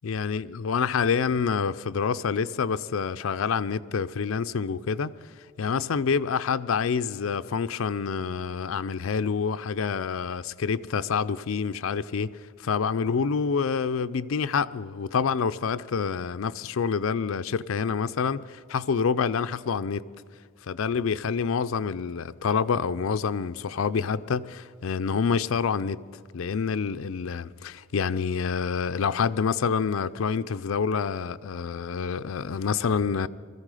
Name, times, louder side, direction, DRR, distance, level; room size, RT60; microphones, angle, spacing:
voice 1, 0.0-5.1 5.6-12.3 12.6-20.1 20.7-26.0 26.3-33.3, left 6 dB, 75° left, 0.5 m, -27 dB
21.0 x 14.0 x 4.9 m
head